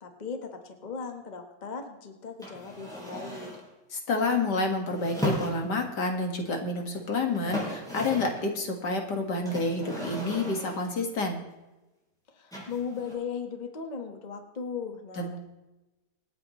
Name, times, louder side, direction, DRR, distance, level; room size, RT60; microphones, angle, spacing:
voice 1, 0.0-3.5 12.3-15.4, left 6 dB, 25° left, 5 dB, 1.4 m, -37 dB
sound 1, 2.4-3.7 4.9-6.0 6.9-7.0 7.3-8.5 9.4-10.9 12.5-13.1, equal, ahead, 5.7 m, -36 dB
voice 2, 3.9-11.4 15.2-15.4, left 3 dB, 75° left, 3 dB, 2.5 m, -29 dB
26.5 x 9.1 x 3.1 m, 1.0 s
omnidirectional pair, 1.9 m